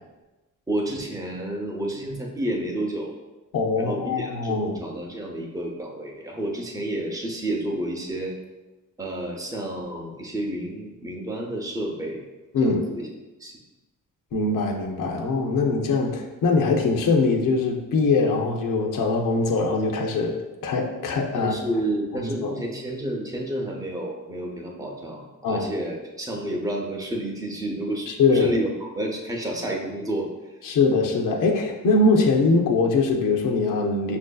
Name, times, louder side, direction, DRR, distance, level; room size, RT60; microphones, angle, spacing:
voice 1, 0.7-3.1 3.8-8.3 9.0-12.2 12.6-13.1 13.4-13.5 21.3-30.3, right 1 dB, 10° right, 0 dB, 0.6 m, -30 dB
voice 2, 3.5-4.8 12.5-12.8 14.3-20.4 20.6-21.5 22.4-22.5 25.4-25.7 28.1-28.5 30.6-34.2, left 3 dB, 75° left, 2 dB, 0.6 m, -22 dB
5.7 x 2.6 x 2.2 m, 1.1 s
cardioid pair, 95°, 32 cm